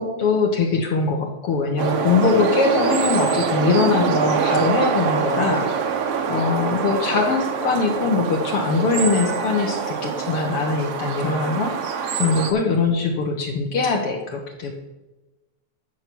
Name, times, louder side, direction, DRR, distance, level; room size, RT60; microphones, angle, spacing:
voice 1, 0.0-5.7 6.3-14.7, left 4 dB, 60° left, 2 dB, 1.8 m, -22 dB
sound 1, 1.8-12.5, right 6 dB, 65° right, 1.7 m, -24 dB
12.0 x 6.9 x 6.1 m, 1.1 s
omnidirectional pair, 3.5 m